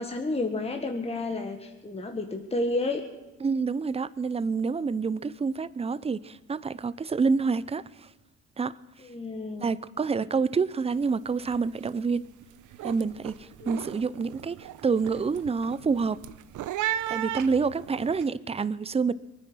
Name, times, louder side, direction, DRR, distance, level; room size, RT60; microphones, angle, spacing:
voice 1, 0.0-3.1 9.1-9.8, left 2 dB, 20° left, 1.5 m, -31 dB
voice 2, 3.4-7.8 8.6-8.7 9.6-12.2 12.8-16.2 17.1-19.1, right 5 dB, 20° right, 0.6 m, -27 dB
sound 1, 10.9-11.2 11.4-11.9 12.3-18.2, right 12 dB, 80° right, 0.8 m, -36 dB
23.0 x 9.8 x 6.2 m
cardioid pair, 90°, 30 cm